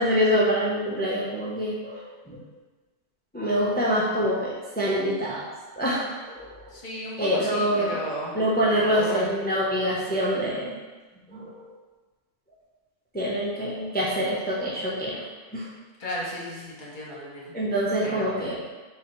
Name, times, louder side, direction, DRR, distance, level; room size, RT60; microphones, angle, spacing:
voice 1, 0.0-2.4 3.3-5.5 5.8-6.6 7.2-8.0 8.3-10.8 11.3-11.7 13.1-15.2 15.5-15.7 17.5-18.6, equal, 10° left, -6 dB, 0.4 m, -25 dB
voice 2, 6.7-8.4 8.7-9.3 16.0-17.5 18.0-18.5, left 1 dB, 50° left, -4 dB, 1.0 m, -34 dB
3.8 x 2.8 x 4.4 m, 1.3 s
omnidirectional pair, 1.2 m